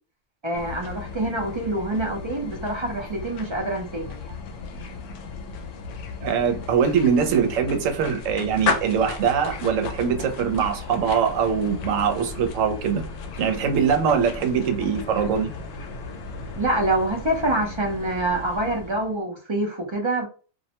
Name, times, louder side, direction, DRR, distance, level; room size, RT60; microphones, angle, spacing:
voice 1, 0.4-4.4 16.6-20.3, right 2 dB, 45° right, 0.3 m, -26 dB
sound 1, 0.5-19.2, left 4 dB, 75° left, 0.9 m, -35 dB
voice 2, 6.2-13.0 13.4-15.5, right 7 dB, 90° right, 1.0 m, -22 dB
2.5 x 2.1 x 2.8 m
omnidirectional pair, 1.3 m